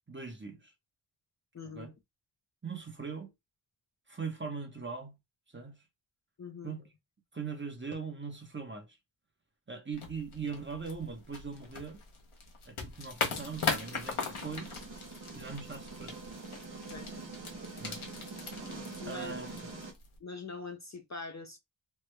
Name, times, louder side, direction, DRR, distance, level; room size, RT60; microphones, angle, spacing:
voice 1, 0.1-0.7 1.6-1.9 2.6-3.3 4.1-5.1 5.5-5.8 6.6-6.8 7.3-9.0 9.7-12.0 12.7-14.7 15.3-16.2 17.8-18.0 19.1-19.7, right 5 dB, 25° right, 0.8 m, -40 dB
voice 2, 1.5-1.9 6.4-6.8 16.9-17.1 19.0-19.4 20.2-21.6, left 4 dB, 40° left, 0.5 m, -43 dB
sound 1, 9.9-20.2, left 5 dB, 90° left, 1.0 m, -40 dB
sound 2, 13.3-19.9, right 3 dB, 70° right, 1.3 m, -45 dB
3.2 x 2.1 x 3.2 m
wide cardioid pair, 95°, 48 cm